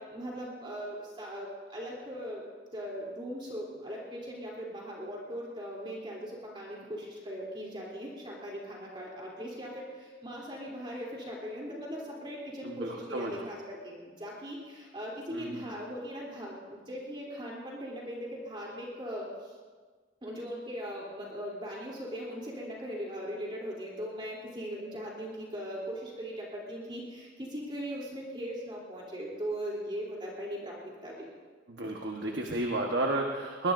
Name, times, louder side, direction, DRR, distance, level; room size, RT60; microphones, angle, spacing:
voice 1, 0.0-2.4 2.7-19.5 20.2-30.8 31.0-31.3, equal, 25° right, -4 dB, 3.4 m, -39 dB
voice 2, 12.6-13.4 15.3-15.7 31.7-33.7, right 2 dB, 60° right, 0 dB, 1.3 m, -32 dB
22.5 x 20.5 x 2.7 m, 1.5 s
head